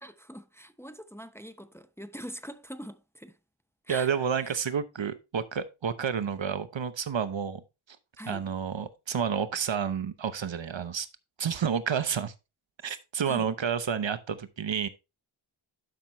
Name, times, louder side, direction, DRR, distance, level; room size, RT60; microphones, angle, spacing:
voice 1, 0.0-3.4 3.8-4.1 4.4-4.6 8.2-8.4 13.3-13.5, equal, 5° left, 0.8 m, -43 dB
voice 2, 3.9-7.6 8.3-11.1 11.4-12.3 12.8-14.9, right 7 dB, 65° right, 0.9 m, -30 dB
11.5 x 5.8 x 3.0 m
wide cardioid pair, 50°, 48 cm